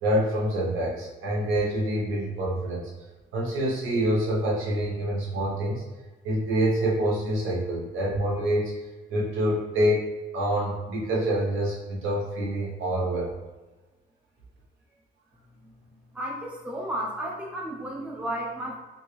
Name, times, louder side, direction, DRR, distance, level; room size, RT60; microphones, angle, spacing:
voice 1, 0.0-2.9 3.3-5.8 6.2-8.7 9.1-13.3, right 1 dB, 85° right, -4 dB, 1.0 m, -26 dB
voice 2, 16.1-18.8, right 1 dB, 5° right, -3 dB, 0.7 m, -33 dB
2.8 x 2.6 x 3.2 m, 1.2 s
cardioid pair, 90°, 20 cm